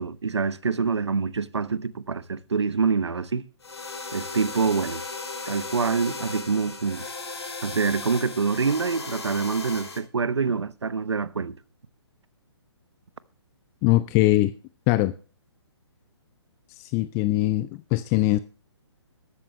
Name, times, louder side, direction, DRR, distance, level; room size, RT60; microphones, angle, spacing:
voice 1, 0.0-3.5 4.1-5.0 5.5-7.1 7.6-11.6, right 5 dB, 75° right, 1.0 m, -26 dB
sound 1, 3.6-10.0, left 3 dB, 70° left, 6.6 m, -36 dB
voice 2, 13.8-14.5 14.9-15.1 16.8-18.4, left 17 dB, 20° left, 0.5 m, -21 dB
14.0 x 13.0 x 3.1 m
figure-of-eight pair, 135°, 15 cm